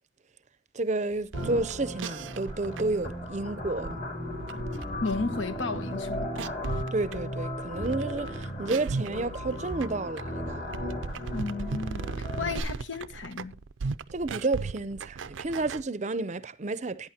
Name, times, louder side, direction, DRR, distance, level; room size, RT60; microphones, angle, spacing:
voice 1, 0.7-3.9 6.9-10.7 14.1-17.1, right 2 dB, 40° right, 0.5 m, -31 dB
sound 1, 1.2-15.8, right 4 dB, 85° right, 0.5 m, -37 dB
sound 2, 1.3-12.6, left 1 dB, 45° left, 3.6 m, -36 dB
voice 2, 5.0-6.3 11.3-13.6, left 3 dB, 80° left, 1.2 m, -33 dB
16.0 x 9.2 x 2.8 m
head